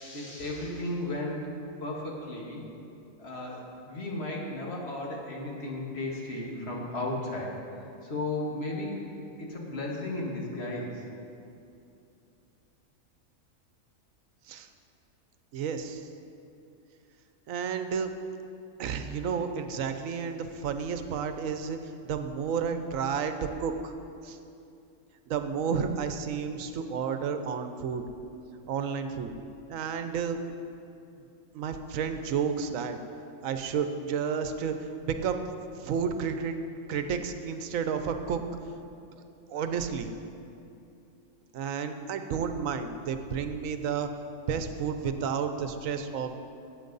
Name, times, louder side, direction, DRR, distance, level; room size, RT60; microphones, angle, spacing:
voice 1, 0.0-1.5 1.8-2.7 3.2-8.9 9.4-11.1, left 2 dB, 50° left, -2 dB, 1.8 m, -35 dB
voice 2, 15.5-16.1 17.5-18.1 18.8-23.9 24.2-24.4 25.3-28.0 28.7-29.3 29.7-30.6 31.1-31.2 31.5-33.0 33.4-35.4 35.8-36.6 36.9-38.4 39.5-40.1 41.5-44.1 44.5-46.3, right 6 dB, 85° right, 8 dB, 1.1 m, -31 dB
13.5 x 8.4 x 3.9 m, 2.6 s
omnidirectional pair, 1.4 m